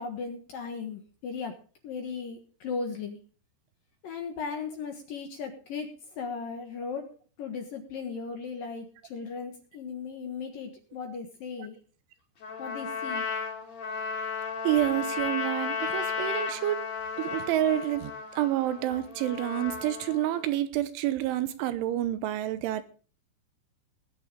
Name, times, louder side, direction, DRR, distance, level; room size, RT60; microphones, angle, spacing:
voice 1, 0.0-1.5 1.8-3.2 4.0-7.1 7.4-11.8 12.6-13.3, left 5 dB, 60° left, 2.5 m, -37 dB
Trumpet, 12.4-20.5, left 5 dB, 35° left, 4.7 m, -34 dB
voice 2, 14.6-16.8 17.2-22.8, right 13 dB, 80° right, 3.2 m, -28 dB
20.0 x 9.5 x 3.7 m
omnidirectional pair, 5.7 m